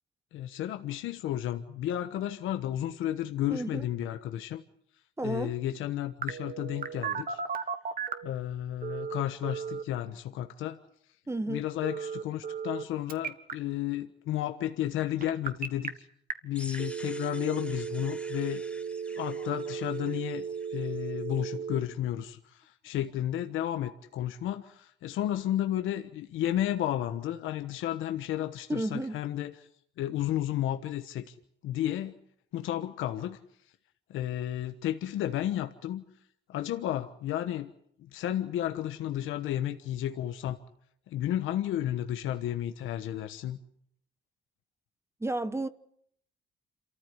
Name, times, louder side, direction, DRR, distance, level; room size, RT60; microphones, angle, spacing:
voice 1, 0.3-4.6 5.2-7.4 8.2-10.8 11.5-15.9 16.4-18.6 19.1-20.4 20.7-29.7 30.0-31.4 31.6-32.2 32.5-33.4 34.1-36.0 36.5-37.7 38.0-40.6 41.1-43.6, left 12 dB, 90° left, 1.2 m, -32 dB
voice 2, 3.5-3.8 5.2-5.5 11.3-11.7 28.7-29.2 45.2-45.7, right 2 dB, 15° right, 1.2 m, -32 dB
Telephone, 6.2-8.3 8.8-9.8 11.8-12.8 13.1-13.5 15.2-15.9 16.3-16.4 16.7-21.8, right 6 dB, 45° right, 1.8 m, -35 dB
sound 1, 16.5-21.4, left 1 dB, 5° left, 1.3 m, -49 dB
27.5 x 14.5 x 9.7 m
cardioid pair, 90°, 20 cm